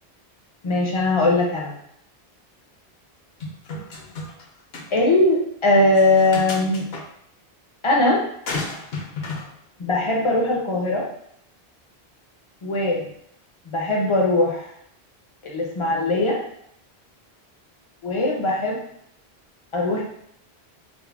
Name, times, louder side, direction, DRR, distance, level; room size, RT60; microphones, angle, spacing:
voice 1, 0.6-1.7 4.9-6.9 7.8-8.2 9.8-11.1 12.6-13.0 13.7-14.7 15.4-16.4 18.0-18.8 19.7-20.0, left 2 dB, 40° left, -1 dB, 0.4 m, -20 dB
sound 1, 3.4-4.4 4.7-4.9 5.9-7.0 8.5-9.5, left 3 dB, 70° left, 0.8 m, -32 dB
3.7 x 2.0 x 2.3 m, 0.71 s
omnidirectional pair, 1.1 m